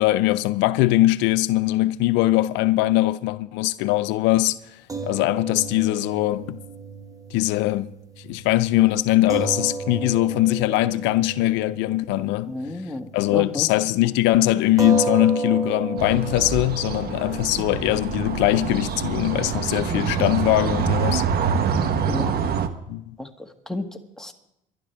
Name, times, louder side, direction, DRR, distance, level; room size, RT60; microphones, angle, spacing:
voice 1, 0.0-4.6 5.0-6.6 7.3-7.9 8.2-12.5 13.1-21.3 22.9-23.2, left 16 dB, 90° left, 0.5 m, -21 dB
sound 1, 4.9-13.4 13.7-13.9 14.8-21.3, right 4 dB, 20° right, 1.6 m, -34 dB
voice 2, 12.5-13.7 19.9-20.0 22.1-22.3 23.7-23.9 24.2-24.3, left 2 dB, 5° left, 1.9 m, -31 dB
sound 2, 16.0-22.7, right 6 dB, 60° right, 1.3 m, -25 dB
28.0 x 12.0 x 3.5 m
cardioid pair, 90°, 18 cm